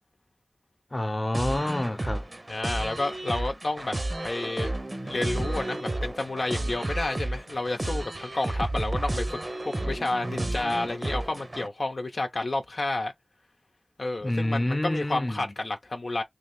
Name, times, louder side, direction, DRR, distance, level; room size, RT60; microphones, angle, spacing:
voice 1, 0.9-2.3 14.2-15.5, left 1 dB, 40° left, 0.8 m, -28 dB
sound 1, 1.3-11.7, right 1 dB, 45° right, 0.8 m, -32 dB
voice 2, 2.5-3.9 4.2-4.7 5.0-9.4 9.7-13.1 14.0-16.2, left 2 dB, 85° left, 0.7 m, -30 dB
3.4 x 2.7 x 3.5 m
wide cardioid pair, 50°, 0 cm